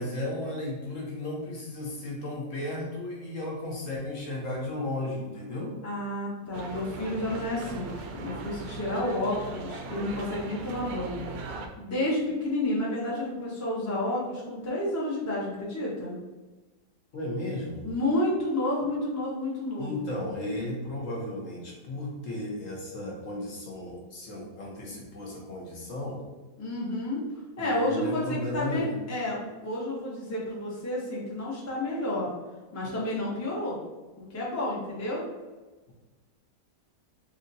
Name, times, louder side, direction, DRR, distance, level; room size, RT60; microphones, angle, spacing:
voice 1, 0.0-5.7 17.1-17.9 19.8-26.2 27.6-29.0, left 1 dB, 55° left, -3 dB, 1.1 m, -34 dB
voice 2, 5.8-16.2 17.8-20.1 26.6-27.2 27.6-32.3 32.7-33.8 34.3-35.2, left 1 dB, 15° left, -5 dB, 0.6 m, -30 dB
sound 1, 6.5-11.7, right 3 dB, 70° right, 0.9 m, -39 dB
3.4 x 2.8 x 3.9 m, 1.2 s
omnidirectional pair, 1.8 m